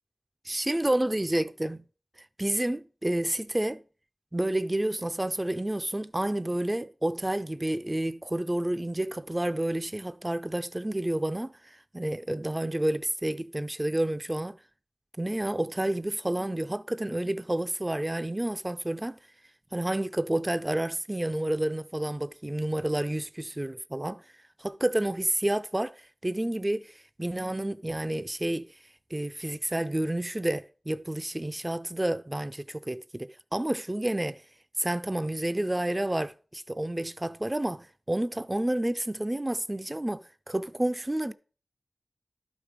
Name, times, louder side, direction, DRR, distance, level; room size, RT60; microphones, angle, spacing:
voice 1, 0.5-1.8 2.4-3.8 4.3-14.5 15.2-19.2 19.7-24.2 24.6-25.9 26.2-28.7 29.1-34.4 34.8-41.3, right 1 dB, 20° right, 0.5 m, -30 dB
11.5 x 5.1 x 5.1 m
wide cardioid pair, 50°, 0 cm